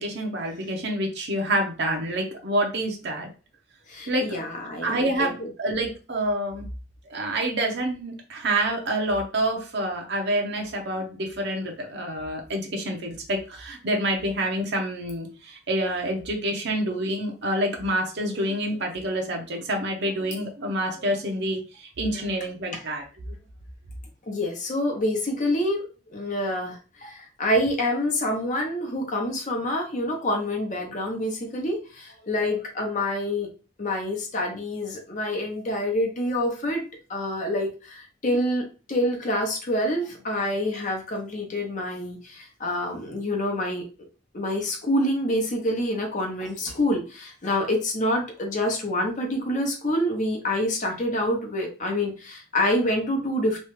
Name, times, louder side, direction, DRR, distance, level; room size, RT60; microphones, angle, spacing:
voice 1, 0.0-3.3 4.1-4.4 4.8-6.7 7.1-23.0, right 1 dB, 60° right, 2 dB, 0.8 m, -27 dB
voice 2, 3.9-5.5 22.7-22.8 24.3-33.5 33.8-36.8 37.1-43.8 44.3-53.6, left 1 dB, 40° left, 2 dB, 0.8 m, -27 dB
3.1 x 2.3 x 3.1 m, 0.33 s
head